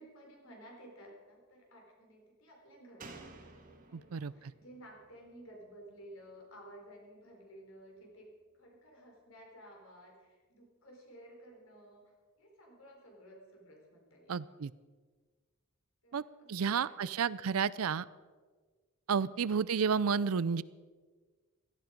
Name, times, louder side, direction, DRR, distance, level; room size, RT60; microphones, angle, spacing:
voice 1, 0.0-3.4 3.8-8.3 8.6-14.3 16.0-17.4, right 1 dB, 70° left, 0 dB, 4.3 m, -55 dB
Slam, 3.0-6.5 6.8-6.9, right 3 dB, 40° right, 1.7 m, -54 dB
voice 2, 14.3-14.7 16.1-16.2 16.5-18.1 19.1-20.6, right 6 dB, 85° right, 19 dB, 0.5 m, -31 dB
16.5 x 13.5 x 5.2 m, 1.4 s
head